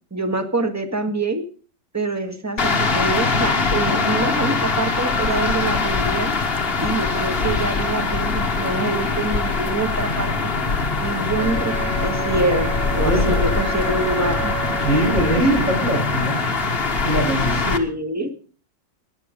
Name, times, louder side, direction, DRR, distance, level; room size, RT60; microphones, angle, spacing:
voice 1, 0.1-1.4 1.9-6.3 6.8-10.5 11.0-14.5 17.6-18.3, right 2 dB, 10° right, 6 dB, 1.6 m, -25 dB
sound 1, 2.6-17.8, left 4 dB, 35° left, 1.6 m, -22 dB
Wind instrument woodwind instrument, 11.4-15.5, right 11 dB, 65° right, 1.9 m, -32 dB
voice 2, 13.0-13.4 14.8-16.4 17.0-17.7, right 1 dB, 45° right, -1 dB, 8.4 m, -21 dB
17.0 x 11.0 x 5.1 m, 0.39 s
omnidirectional pair, 2.0 m